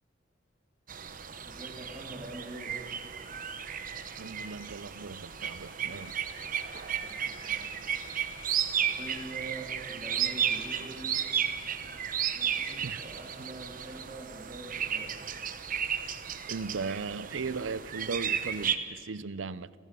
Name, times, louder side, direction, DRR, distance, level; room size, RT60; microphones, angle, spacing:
sound 1, 0.9-18.8, right 8 dB, 45° right, 1.0 m, -34 dB
voice 1, 1.4-2.7 7.0-8.0 8.7-11.2 12.3-15.2, right 2 dB, 20° right, 3.2 m, -45 dB
voice 2, 4.2-6.2 12.8-13.0 16.5-19.7, right 4 dB, 70° right, 0.6 m, -37 dB
30.0 x 15.5 x 6.9 m
head